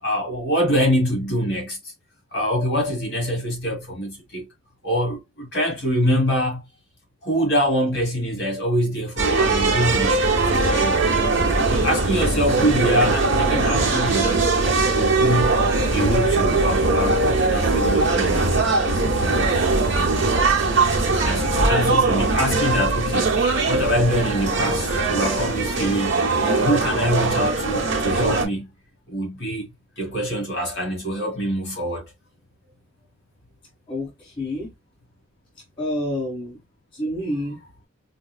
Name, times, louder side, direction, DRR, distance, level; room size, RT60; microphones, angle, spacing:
voice 1, 0.0-1.8 2.3-4.5 4.8-6.6 7.2-11.0 11.7-14.6 14.9-15.6 15.9-18.6 21.2-23.4 23.7-28.7 29.1-29.7 30.0-32.1, equal, 55° left, 2.3 m, -24 dB
sound 1, 9.2-28.4, right 3 dB, 60° right, 1.0 m, -20 dB
voice 2, 33.9-34.7 35.8-36.6 36.9-37.6, left 1 dB, 25° left, 1.5 m, -28 dB
5.1 x 2.2 x 2.3 m
head